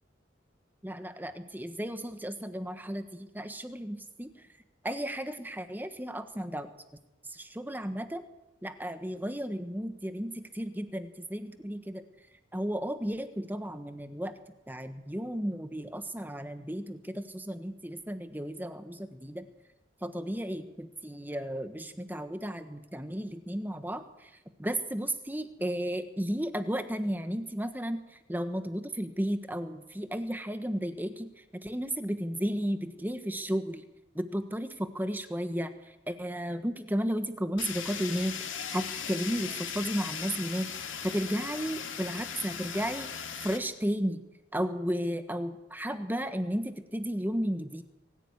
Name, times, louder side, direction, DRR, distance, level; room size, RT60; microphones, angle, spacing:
voice 1, 0.8-4.3 4.8-6.7 7.3-8.2 8.6-12.0 12.5-14.3 14.7-19.4 20.0-24.3 24.6-33.8 34.1-35.7 36.1-43.1 43.4-44.2 44.5-47.8, equal, 10° right, 9 dB, 1.5 m, -34 dB
Fire, 37.6-43.6, left 7 dB, 85° left, 3.3 m, -38 dB
24.0 x 15.5 x 9.8 m, 0.95 s
head